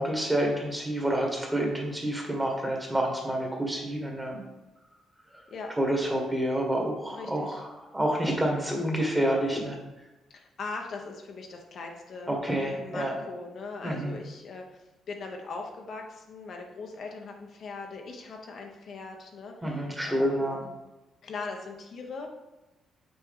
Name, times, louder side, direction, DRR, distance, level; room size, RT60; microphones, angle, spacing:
voice 1, 0.0-4.4 5.8-9.8 12.3-13.1 13.8-14.1 19.6-20.6, right 1 dB, 10° right, 0 dB, 1.6 m, -28 dB
voice 2, 7.1-7.6 10.3-12.3 12.8-14.6 15.1-20.7 21.2-22.3, left 4 dB, 60° left, 2 dB, 0.8 m, -40 dB
6.1 x 4.5 x 3.6 m, 1.0 s
cardioid pair, 90°, 0 cm